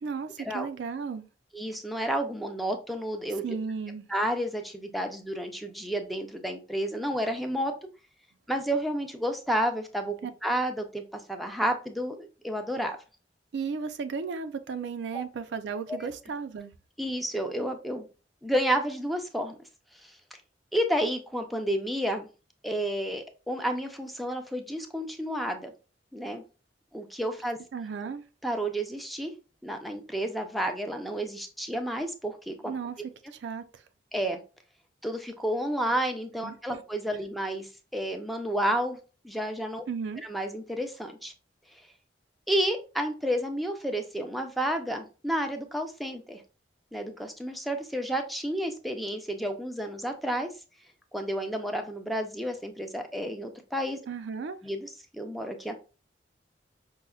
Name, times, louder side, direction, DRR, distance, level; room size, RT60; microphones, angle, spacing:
voice 1, 0.0-1.3 3.4-4.0 10.2-10.3 13.5-16.7 27.7-28.2 32.7-33.0 33.4-33.6 36.4-36.8 39.9-40.2 54.1-54.6, right 5 dB, 70° right, 0.4 m, -34 dB
voice 2, 1.5-3.6 4.1-7.7 8.5-10.1 10.4-13.0 15.1-15.2 15.9-16.0 17.0-18.1 18.4-19.6 20.7-22.3 22.6-25.7 26.1-26.4 26.9-27.6 28.4-29.3 29.6-32.7 34.1-34.4 35.0-39.0 39.2-39.8 40.2-41.3 42.5-46.4 46.9-50.5 51.1-54.0 54.6-55.7, right 1 dB, ahead, 0.4 m, -31 dB
5.3 x 2.1 x 2.3 m
head